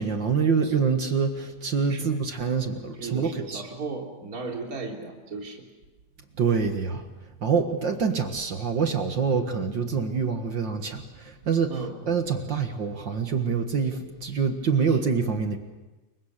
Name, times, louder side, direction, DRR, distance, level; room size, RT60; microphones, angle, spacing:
voice 1, 0.0-3.6 6.4-7.0 7.4-11.7 12.0-15.6, right 5 dB, 45° right, 6 dB, 1.5 m, -26 dB
voice 2, 3.0-5.6 11.7-12.0 14.9-15.0, right 4 dB, 25° right, 0 dB, 3.6 m, -35 dB
29.0 x 24.0 x 6.7 m, 1.1 s
omnidirectional pair, 4.2 m